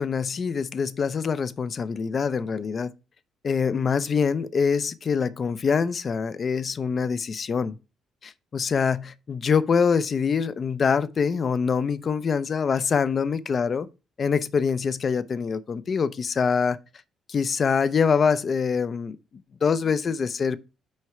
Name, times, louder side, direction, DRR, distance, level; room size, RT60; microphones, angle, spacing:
voice 1, 0.0-2.9 3.4-7.8 8.2-13.9 14.2-16.8 17.3-19.2 19.6-20.6, left 6 dB, 45° left, 0.5 m, -24 dB
6.4 x 4.3 x 4.8 m
cardioid pair, 90°, 0 cm